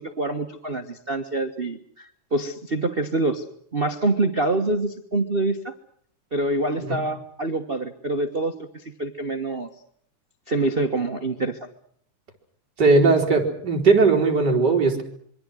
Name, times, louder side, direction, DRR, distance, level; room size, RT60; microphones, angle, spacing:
voice 1, 0.0-3.4 3.7-5.7 6.3-8.7 9.0-9.7 10.5-11.7, right 2 dB, 55° right, 8 dB, 0.6 m, -26 dB
voice 2, 12.8-15.0, right 3 dB, 35° right, 1 dB, 4.3 m, -18 dB
26.5 x 24.0 x 6.4 m, 0.63 s
omnidirectional pair, 3.4 m